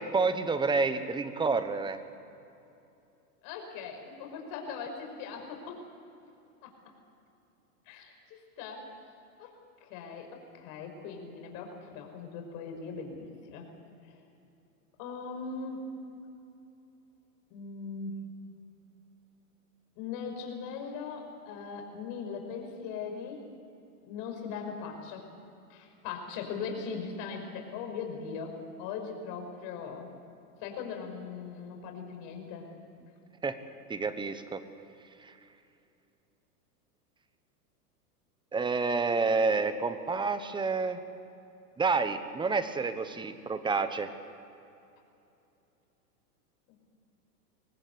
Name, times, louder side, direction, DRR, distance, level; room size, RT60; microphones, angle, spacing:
voice 1, 0.0-2.0 33.4-33.6 33.9-34.6 35.2-35.3 38.5-41.0 41.8-44.1, right 4 dB, 10° right, 11 dB, 1.2 m, -29 dB
voice 2, 3.4-5.8 6.6-6.7 7.9-8.8 9.4-9.5 9.8-13.7 14.0-14.2 15.0-15.9 17.5-18.1 20.0-23.4 24.0-25.3 25.7-30.1 30.6-32.7, left 5 dB, 45° left, 3 dB, 5.8 m, -40 dB
24.0 x 18.5 x 8.4 m, 2.8 s
hypercardioid pair, 135°, 46 cm